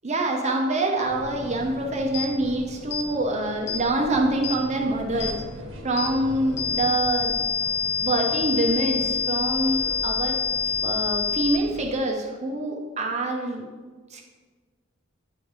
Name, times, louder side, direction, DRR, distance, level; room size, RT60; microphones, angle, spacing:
voice 1, 0.0-5.4 5.8-7.3 8.0-10.4 10.8-13.7 14.1-14.2, right 2 dB, 35° right, 1 dB, 0.8 m, -25 dB
sound 1, 1.1-12.0, equal, 60° right, 1.2 m, -40 dB
sound 2, 2.1-2.3 2.9-3.1 3.7-3.8 4.4-4.6 5.2-5.4 6.0-6.1 6.6-11.6, left 6 dB, 55° left, 0.7 m, -26 dB
9.4 x 3.5 x 4.7 m, 1.4 s
head